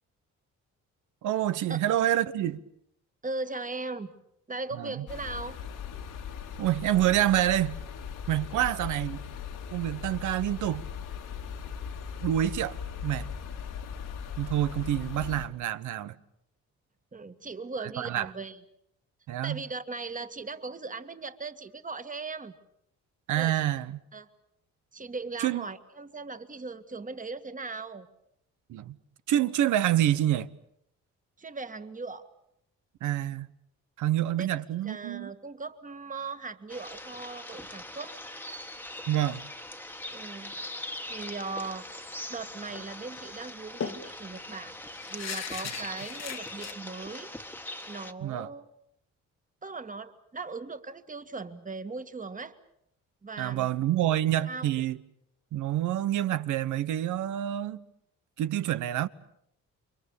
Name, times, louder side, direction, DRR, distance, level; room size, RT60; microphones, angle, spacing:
voice 1, 1.2-2.6 4.8-5.0 6.6-7.8 8.3-9.2 9.7-10.8 12.2-13.3 14.4-16.1 18.0-18.3 19.3-19.6 23.3-23.9 25.4-25.6 28.7-29.0 29.3-30.5 33.0-33.5 34.0-35.3 39.1-39.4 48.2-48.5 53.4-55.0 55.5-57.8 58.4-59.1, right 12 dB, 80° right, 1.1 m, -27 dB
voice 2, 3.2-4.1 4.5-5.6 8.5-8.8 17.1-18.6 19.4-22.6 23.4-23.7 24.1-24.3 24.9-28.1 31.4-32.3 34.4-34.5 34.8-38.2 40.1-40.6 41.0-42.0 42.3-44.8 45.1-47.3 47.9-48.7 49.6-52.6 53.2-53.7 54.5-54.7, right 3 dB, 25° right, 1.9 m, -38 dB
sound 1, 5.1-15.5, left 7 dB, 80° left, 3.0 m, -39 dB
sound 2, 36.7-48.1, left 1 dB, 5° left, 1.6 m, -41 dB
sound 3, 42.7-42.9 43.2-43.3 43.8-46.7, left 8 dB, 60° left, 1.8 m, -38 dB
29.5 x 24.0 x 7.2 m
cardioid pair, 90°, 30 cm